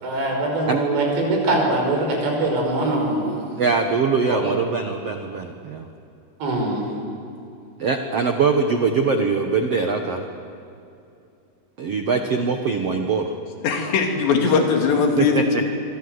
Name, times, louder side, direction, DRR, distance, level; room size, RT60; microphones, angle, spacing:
voice 1, 0.0-3.5 4.3-4.6 6.4-6.8, right 2 dB, 85° right, 1 dB, 7.8 m, -22 dB
voice 2, 3.6-5.9 7.8-10.3 11.8-13.3 15.2-15.7, right 4 dB, 70° right, 4 dB, 1.4 m, -22 dB
voice 3, 13.6-15.7, left 5 dB, 85° left, 2 dB, 4.9 m, -20 dB
26.5 x 24.0 x 8.0 m, 2.6 s
omnidirectional pair, 4.8 m